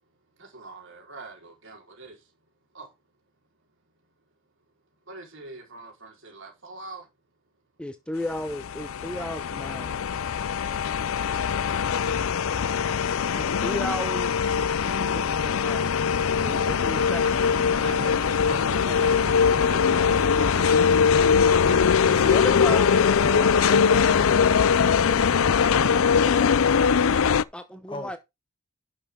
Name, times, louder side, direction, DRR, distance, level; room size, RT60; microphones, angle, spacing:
voice 1, 0.4-2.2 2.7-2.9 5.1-7.0 16.4-16.5 16.9-17.5 17.8-21.3 21.7-21.8 22.1-22.4, right 3 dB, 60° right, 4.5 m, -43 dB
voice 2, 7.8-9.9 13.3-15.9 16.4-17.6 27.5-28.2, left 1 dB, 5° left, 0.8 m, -36 dB
sound 1, 8.5-27.4, left 6 dB, 70° left, 0.5 m, -22 dB
voice 3, 12.2-13.0 27.9-28.2, left 1 dB, 25° left, 1.6 m, -40 dB
sound 2, 16.3-25.9, right 3 dB, 35° right, 0.6 m, -39 dB
11.5 x 6.6 x 3.8 m
head